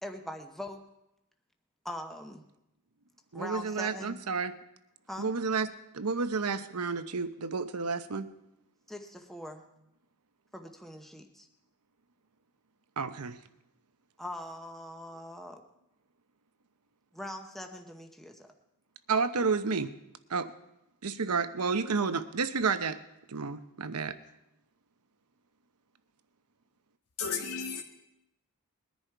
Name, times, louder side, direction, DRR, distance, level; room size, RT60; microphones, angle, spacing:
voice 1, 0.0-0.8 1.8-2.4 3.3-4.2 5.1-5.3 8.9-9.6 10.5-11.5 14.2-15.6 17.1-18.5, left 1 dB, ahead, 0.8 m, -42 dB
voice 2, 3.3-4.5 5.2-5.7 5.9-8.3 13.0-13.4 19.1-19.9 20.3-20.5 21.0-23.0 23.3-24.2, right 4 dB, 85° right, 0.9 m, -30 dB
voice 3, 27.2-27.8, left 5 dB, 75° left, 1.3 m, -33 dB
21.0 x 10.5 x 4.6 m
head